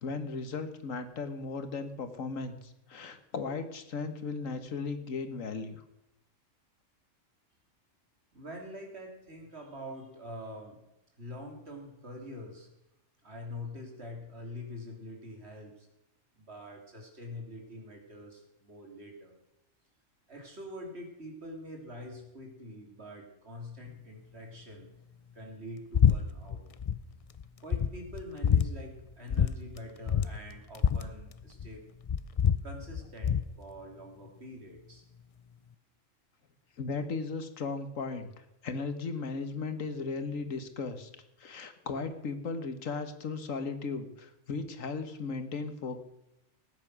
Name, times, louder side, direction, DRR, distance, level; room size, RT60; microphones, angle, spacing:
voice 1, 0.0-5.8 36.8-38.3 38.6-41.1 41.4-46.0, left 4 dB, 90° left, 9 dB, 1.8 m, -36 dB
voice 2, 8.3-10.8 11.2-12.7 13.2-15.9 16.4-19.4 20.3-24.9 25.3-26.6 27.6-31.8 32.6-35.0, left 1 dB, 55° right, 2 dB, 3.2 m, -45 dB
sound 1, 25.9-26.2 26.4-27.0 27.4-27.5 27.7-28.7 29.3-29.5 29.8-29.9 30.1-31.7 32.1-33.5, left 8 dB, 50° left, 0.4 m, -26 dB
18.5 x 9.3 x 6.1 m, 0.88 s
omnidirectional pair, 1.3 m